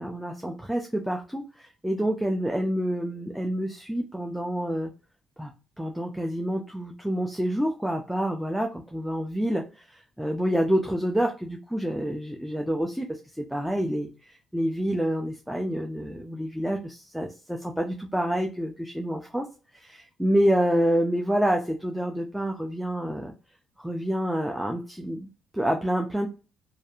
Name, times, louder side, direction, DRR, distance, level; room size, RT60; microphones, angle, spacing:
voice 1, 0.0-4.9 5.4-5.5 5.8-19.5 19.7-23.3 23.8-26.3, equal, 5° right, 2 dB, 0.4 m, -28 dB
2.6 x 2.4 x 2.3 m, 0.33 s
cardioid pair, 90°, 0 cm